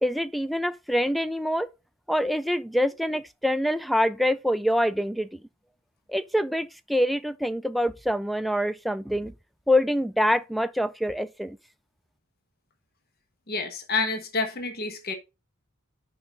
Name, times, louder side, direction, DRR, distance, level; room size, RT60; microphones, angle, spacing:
voice 1, 0.0-1.7 2.1-5.4 6.1-9.3 9.7-11.6, equal, ahead, 0.3 m, -25 dB
voice 2, 13.5-15.1, left 3 dB, 50° left, 1.3 m, -28 dB
7.8 x 5.5 x 3.8 m
head